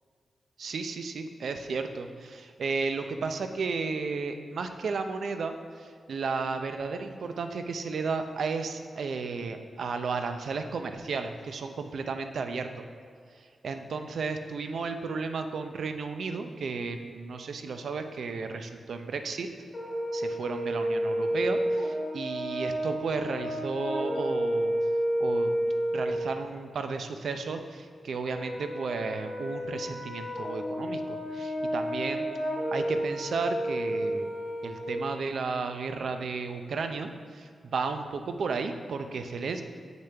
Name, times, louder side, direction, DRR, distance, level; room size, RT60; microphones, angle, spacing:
voice 1, 0.6-12.8 13.4-19.5 20.1-24.7 25.2-25.5 25.9-32.3 32.7-34.3 34.6-39.6, right 4 dB, 70° right, 7 dB, 0.5 m, -33 dB
Brass instrument, 19.7-26.2 28.3-34.9, equal, 25° left, 1.8 m, -31 dB
8.2 x 6.7 x 3.4 m, 2.2 s
wide cardioid pair, 115°, 0 cm